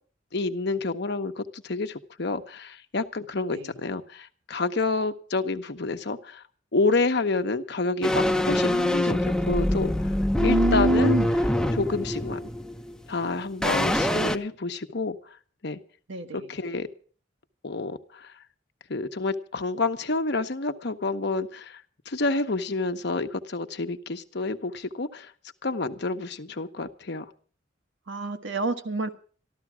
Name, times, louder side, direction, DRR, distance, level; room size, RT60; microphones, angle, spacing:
voice 1, 0.3-6.4 6.7-11.2 11.7-12.4 13.1-15.4 15.6-15.8 16.3-16.9 17.6-18.3 18.9-25.3 25.6-27.3, left 3 dB, 65° left, 8 dB, 1.0 m, -29 dB
sound 1, 8.0-13.2 13.6-14.4, left 1 dB, 5° left, 0.6 m, -24 dB
voice 2, 10.4-11.4 16.1-16.5 28.1-29.1, right 2 dB, 75° right, 6 dB, 1.4 m, -26 dB
13.0 x 13.0 x 6.1 m, 0.42 s
head